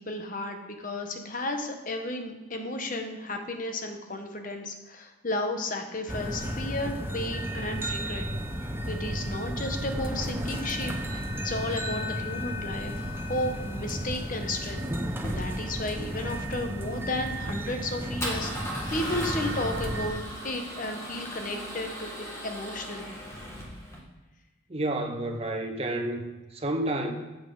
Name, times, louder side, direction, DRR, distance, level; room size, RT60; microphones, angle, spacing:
voice 1, 0.0-8.3 8.9-14.9 15.3-20.2 20.4-22.1 22.4-23.2, left 1 dB, 40° left, 5 dB, 1.0 m, -33 dB
sound 1, 6.1-20.1, equal, 10° right, 0.7 m, -33 dB
Male speech man speaking / Car / Engine starting, 12.9-24.0, equal, 15° left, 1.5 m, -39 dB
voice 2, 24.7-26.2 26.5-27.1, right 1 dB, 30° right, 3 dB, 0.9 m, -30 dB
8.7 x 7.5 x 3.8 m, 1.1 s
head